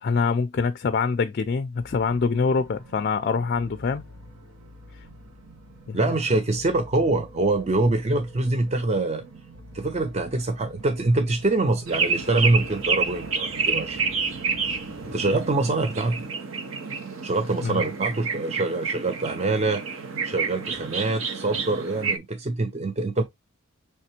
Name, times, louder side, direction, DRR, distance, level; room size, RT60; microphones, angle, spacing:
voice 1, 0.0-4.0 5.9-6.0 17.6-17.8, left 5 dB, 45° left, 0.4 m, -24 dB
sound 1, 1.8-15.5, right 1 dB, 90° right, 1.1 m, -47 dB
voice 2, 5.9-9.2 9.7-14.4 15.0-16.2 17.2-23.2, right 2 dB, 30° right, 0.4 m, -25 dB
sound 2, 11.8-16.4, left 1 dB, 15° right, 1.5 m, -49 dB
sound 3, 11.9-22.2, right 5 dB, 70° right, 0.8 m, -29 dB
5.5 x 3.3 x 2.8 m
head